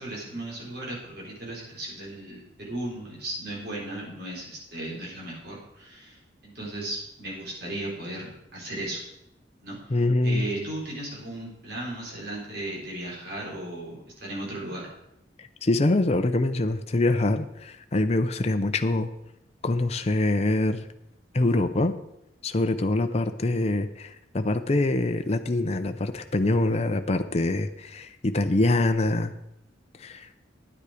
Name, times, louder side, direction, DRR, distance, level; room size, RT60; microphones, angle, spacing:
voice 1, 0.0-9.0 9.6-10.0 10.2-14.9, right 1 dB, 55° right, -3 dB, 3.8 m, -36 dB
voice 2, 9.9-10.5 15.4-19.1 19.6-20.9 21.3-21.9 22.4-29.3 30.0-30.3, left 2 dB, 35° left, 8 dB, 0.6 m, -24 dB
9.7 x 9.5 x 5.0 m, 0.83 s
head